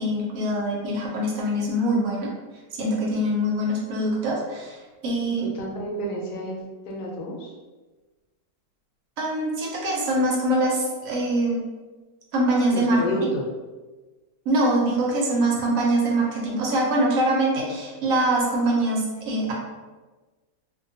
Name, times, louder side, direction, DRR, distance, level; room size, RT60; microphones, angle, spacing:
voice 1, 0.0-2.3 2.8-5.4 9.2-11.6 12.3-13.0 14.5-19.5, right 1 dB, 65° right, -2 dB, 0.9 m, -23 dB
voice 2, 5.5-6.6 6.9-7.5 12.7-13.4, equal, 80° left, -2 dB, 1.2 m, -30 dB
2.7 x 2.2 x 2.6 m, 1.2 s
omnidirectional pair, 1.7 m